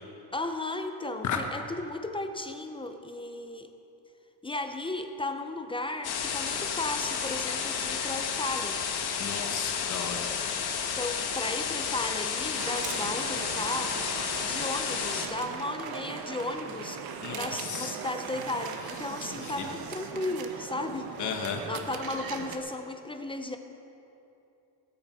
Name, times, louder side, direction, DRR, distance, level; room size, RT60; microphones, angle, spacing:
voice 1, 0.3-3.7 4.4-8.8 10.8-14.0 14.4-17.0 17.3-21.4 21.7-23.6, left 2 dB, 10° left, 6 dB, 0.5 m, -35 dB
sound 1, 6.0-15.3, left 7 dB, 60° left, 1.4 m, -31 dB
voice 2, 9.2-10.3 17.2-17.9 19.4-19.7 21.2-21.7, left 7 dB, 45° left, 3 dB, 1.3 m, -34 dB
sound 2, 12.6-22.6, right 6 dB, 55° right, 1.1 m, -39 dB
17.5 x 8.5 x 4.7 m, 2.8 s
cardioid pair, 140°, 43 cm